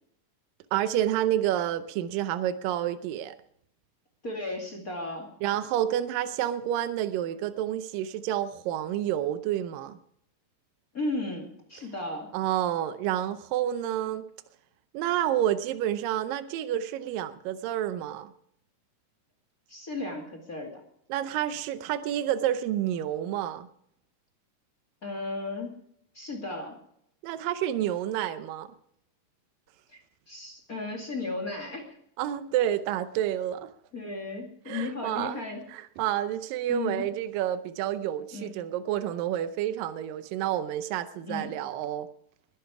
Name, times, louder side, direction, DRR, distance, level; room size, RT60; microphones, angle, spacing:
voice 1, 0.7-3.3 5.4-10.0 12.3-14.3 14.9-18.3 21.1-23.7 27.2-28.7 32.2-33.7 34.7-35.4 35.7-42.1, right 11 dB, 85° right, 11 dB, 2.5 m, -29 dB
voice 2, 4.2-5.3 10.9-12.3 19.7-20.8 25.0-25.7 26.1-26.8 29.9-32.0 33.9-35.6 36.7-37.0 38.3-38.5 41.2-41.5, left 2 dB, 30° left, 3 dB, 2.3 m, -35 dB
21.0 x 10.5 x 4.8 m, 0.70 s
omnidirectional pair, 3.9 m